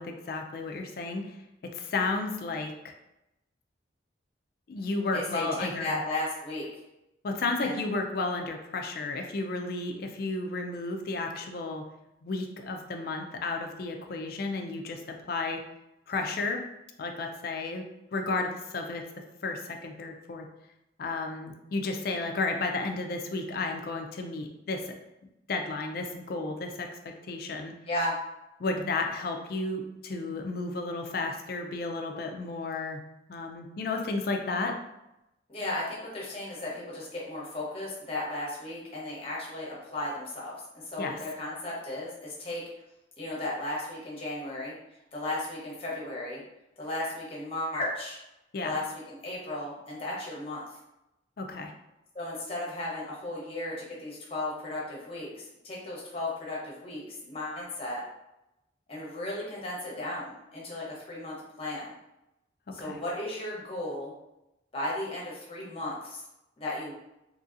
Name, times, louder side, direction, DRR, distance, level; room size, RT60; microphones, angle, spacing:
voice 1, 0.0-1.4 1.7-2.9 4.7-6.0 7.2-11.9 12.2-15.6 16.1-16.7 17.0-19.1 19.4-20.5 21.0-24.9 25.5-27.7 28.6-33.0 33.3-34.8 41.0-41.2 48.5-48.7 51.4-51.7 62.7-63.0, left 3 dB, 50° left, 4 dB, 0.4 m, -33 dB
voice 2, 5.1-6.8 7.6-7.8 27.9-28.2 35.5-42.6 43.2-44.7 45.1-46.4 46.8-48.2 48.6-50.6 52.1-58.0 58.9-61.9 62.7-64.1 64.7-66.2 66.6-66.9, left 1 dB, 30° left, -4 dB, 0.8 m, -35 dB
3.0 x 2.7 x 2.4 m, 0.90 s
head